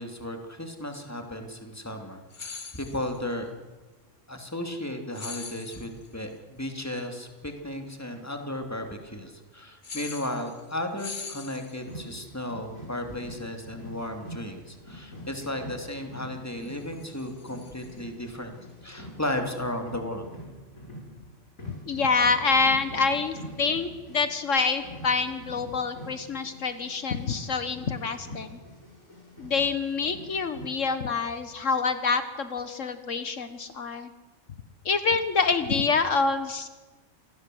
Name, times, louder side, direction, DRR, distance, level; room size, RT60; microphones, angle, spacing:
voice 1, 0.0-3.6 4.3-18.5 18.8-20.3, left 1 dB, 10° left, 5 dB, 2.9 m, -35 dB
sound 1, 2.3-3.2 5.1-6.1 9.8-10.7 11.0-12.0 16.6-18.0, left 5 dB, 40° left, 1.2 m, -42 dB
sound 2, 11.8-30.7, equal, 85° left, 6.7 m, -45 dB
voice 2, 21.9-28.6 29.4-34.1 34.9-36.7, left 4 dB, 70° left, 11 dB, 1.6 m, -26 dB
28.0 x 20.0 x 7.9 m, 1.3 s
omnidirectional pair, 1.4 m